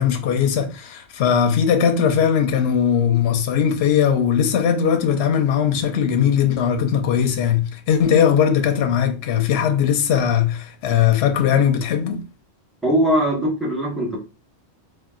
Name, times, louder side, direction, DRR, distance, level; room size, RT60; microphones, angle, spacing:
voice 1, 0.0-12.2, left 8 dB, 70° left, 0.8 m, -19 dB
voice 2, 12.8-14.2, equal, ahead, 0.8 m, -20 dB
3.7 x 2.4 x 2.3 m
omnidirectional pair, 1.2 m